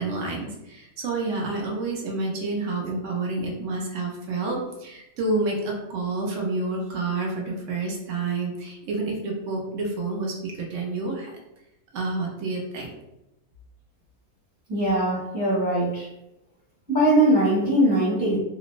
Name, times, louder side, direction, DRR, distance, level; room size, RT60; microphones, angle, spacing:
voice 1, 0.0-11.3 11.9-12.9, right 3 dB, 65° right, -1 dB, 0.8 m, -29 dB
voice 2, 14.7-16.1 16.9-18.4, right 1 dB, 15° left, -9 dB, 1.0 m, -21 dB
2.9 x 2.0 x 2.4 m, 0.89 s
omnidirectional pair, 1.5 m